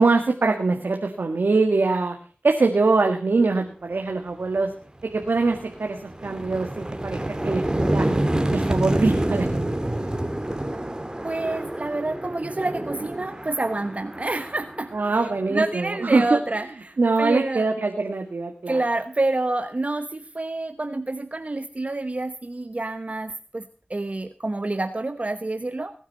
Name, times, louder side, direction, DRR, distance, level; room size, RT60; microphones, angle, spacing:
voice 1, 0.0-2.2 2.4-4.7 5.0-6.0 6.2-9.9 14.9-16.4 17.0-18.8, right 3 dB, 75° right, 3 dB, 1.8 m, -23 dB
sound 1, 4.4-4.6 5.0-15.8, right 1 dB, 20° right, 2.0 m, -28 dB
voice 2, 11.2-17.7 18.7-25.9, right 2 dB, 40° right, 9 dB, 1.0 m, -28 dB
21.0 x 9.3 x 4.2 m, 0.41 s
wide cardioid pair, 50°, 4 cm